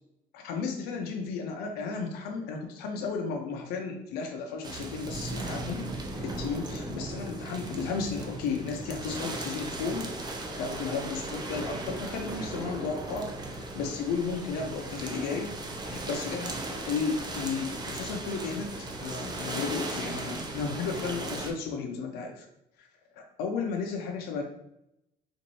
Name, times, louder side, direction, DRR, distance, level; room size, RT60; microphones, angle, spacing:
voice 1, 0.3-5.9 6.2-10.1 10.5-15.5 15.8-16.5 16.9-18.7 19.0-22.4 22.8-22.9 23.2-24.5, left 5 dB, 85° left, 2 dB, 0.5 m, -34 dB
sound 1, 4.6-21.5, right 2 dB, 25° right, 0.5 m, -37 dB
4.0 x 2.5 x 3.0 m, 0.83 s
cardioid pair, 115°, 16 cm